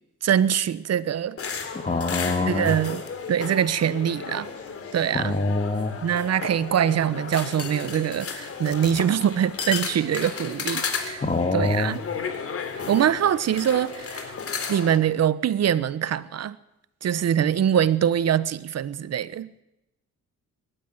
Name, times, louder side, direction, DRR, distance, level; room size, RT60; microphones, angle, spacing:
voice 1, 0.2-1.4 2.5-3.0 3.3-4.5 4.9-5.4 6.0-11.2 11.5-12.0 12.7-14.3 14.7-16.6 17.0-19.5, right 9 dB, 55° right, 1.2 m, -23 dB
sound 1, 1.4-15.0, left 5 dB, 50° left, 3.5 m, -34 dB
voice 2, 1.7-2.8 5.1-6.0 11.2-12.0, left 3 dB, 25° left, 2.7 m, -25 dB
22.0 x 12.5 x 9.9 m
cardioid pair, 90°, 30 cm